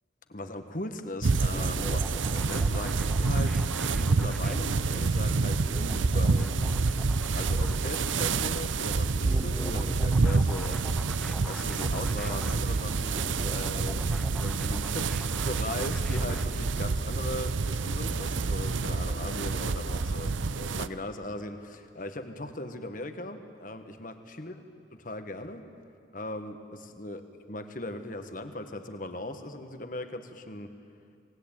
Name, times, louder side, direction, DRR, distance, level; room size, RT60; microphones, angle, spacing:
voice 1, 0.3-3.6 4.0-6.7 7.3-10.8 11.4-13.2 13.5-24.5 25.0-25.7 26.1-27.2 27.5-30.7, left 1 dB, 45° left, 8 dB, 1.5 m, -39 dB
sound 1, 1.2-20.9, right 4 dB, 80° right, 0.7 m, -28 dB
sound 2, 1.5-17.0, equal, ahead, 0.5 m, -43 dB
26.5 x 19.0 x 9.1 m, 2.4 s
head